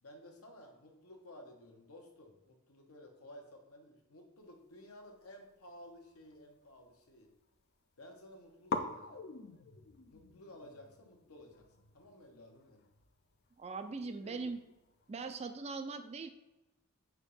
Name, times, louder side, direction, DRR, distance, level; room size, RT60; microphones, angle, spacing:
voice 1, 0.0-7.3 8.0-9.2 10.1-12.8 14.0-14.4, left 1 dB, 75° left, 2 dB, 1.1 m, -55 dB
sound 1, 5.1-6.9 7.2-7.9 8.1-8.2 8.7-15.5, left 4 dB, 45° left, 0.4 m, -46 dB
voice 2, 13.6-14.6 15.1-16.3, right 4 dB, 30° right, 8 dB, 0.4 m, -40 dB
4.8 x 3.6 x 5.3 m, 0.99 s
head